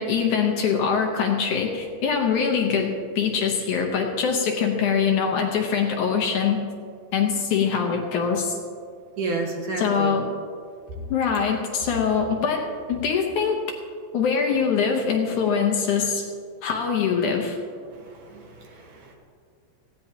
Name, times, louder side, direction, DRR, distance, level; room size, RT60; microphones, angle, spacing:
voice 1, 0.0-6.6 7.1-8.6 9.8-10.3 11.1-13.6 14.1-16.3 16.6-17.6, left 6 dB, 65° left, 2 dB, 2.3 m, -23 dB
voice 2, 9.2-10.1 17.9-19.1, right 3 dB, 60° right, 0 dB, 2.7 m, -31 dB
19.0 x 15.5 x 2.9 m, 2.2 s
omnidirectional pair, 4.1 m